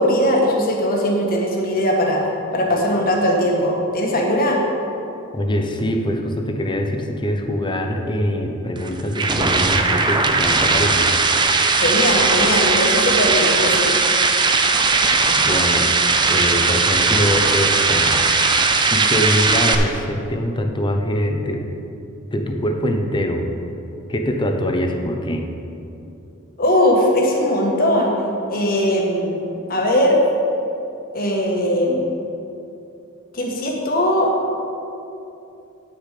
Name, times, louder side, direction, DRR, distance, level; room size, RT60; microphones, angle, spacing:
voice 1, 0.0-2.2 2.5-4.6 11.8-13.9 26.6-28.2 28.5-29.4 29.7-30.2 31.1-32.1 33.3-34.5, equal, 45° left, 0 dB, 1.4 m, -19 dB
voice 2, 5.3-11.1 15.3-15.9 16.3-18.2 18.7-21.6 22.3-23.5 24.1-25.5, equal, 20° left, 3 dB, 0.7 m, -23 dB
sound 1, 8.8-19.8, right 4 dB, 20° right, 0.5 m, -18 dB
9.6 x 6.6 x 5.0 m, 2.8 s
head